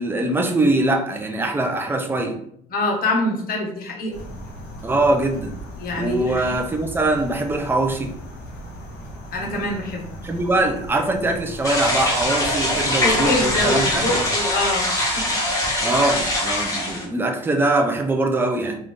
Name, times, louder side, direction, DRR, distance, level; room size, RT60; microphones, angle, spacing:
voice 1, 0.0-2.4 4.8-5.5 6.0-8.1 10.2-14.1 15.8-18.8, right 2 dB, 10° right, 3 dB, 0.6 m, -22 dB
voice 2, 2.7-4.2 5.8-6.5 9.3-10.0 13.0-15.4, left 2 dB, 60° left, -1 dB, 1.2 m, -25 dB
sound 1, 4.1-14.4, equal, 85° left, 1.2 m, -37 dB
sound 2, 11.6-17.0, left 1 dB, 20° left, 1.2 m, -22 dB
3.8 x 2.6 x 3.6 m, 0.68 s
cardioid pair, 110°, 17 cm